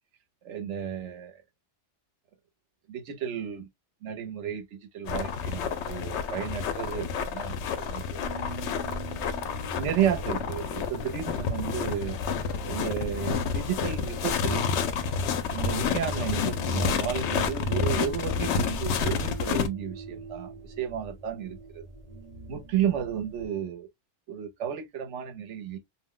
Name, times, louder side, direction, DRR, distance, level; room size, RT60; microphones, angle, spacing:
voice 1, 0.4-1.4 2.9-3.7 4.0-8.2 9.8-12.2 12.7-14.6 15.5-21.8 22.5-23.9 24.3-25.8, right 9 dB, 80° right, 1.0 m, -32 dB
sound 1, 5.1-19.7, left 6 dB, 75° left, 0.8 m, -29 dB
sound 2, 8.2-23.5, equal, 40° right, 0.7 m, -43 dB
2.4 x 2.1 x 3.6 m
omnidirectional pair, 1.2 m